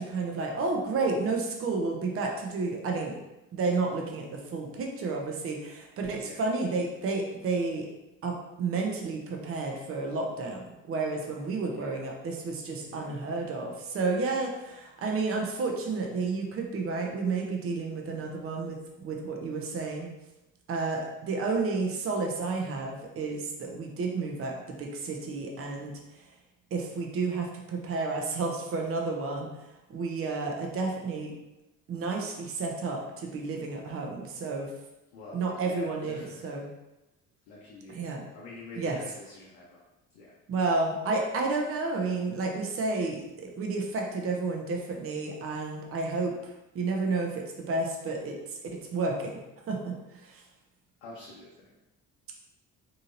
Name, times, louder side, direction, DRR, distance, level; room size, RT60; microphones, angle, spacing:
voice 1, 0.0-3.2 3.5-7.9 8.2-20.1 20.7-26.3 26.7-31.3 31.9-34.7 35.3-36.7 37.9-38.2 38.8-39.0 40.5-49.4 49.7-50.4, right 3 dB, 30° right, 1 dB, 0.7 m, -31 dB
voice 2, 6.1-6.5 11.6-12.1 12.9-13.3 35.1-36.7 37.5-38.1 38.3-39.8 40.1-40.3 51.0-51.7, left 3 dB, 65° left, -5 dB, 0.8 m, -47 dB
3.7 x 2.8 x 2.6 m, 0.97 s
figure-of-eight pair, 50°, 45 cm